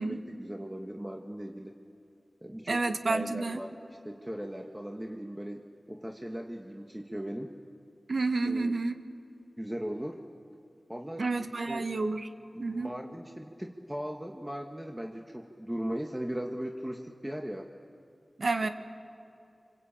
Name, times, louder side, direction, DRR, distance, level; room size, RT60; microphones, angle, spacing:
voice 1, 0.0-1.8 2.4-3.8 4.0-7.5 8.4-8.8 9.6-10.2 10.9-11.9 12.5-17.7, equal, 10° right, 2 dB, 1.5 m, -38 dB
voice 2, 2.7-3.6 8.1-8.9 11.2-12.3 12.6-12.9 18.4-18.7, right 3 dB, 65° right, 7 dB, 1.4 m, -29 dB
26.5 x 25.0 x 8.8 m, 2.6 s
wide cardioid pair, 55°, 0 cm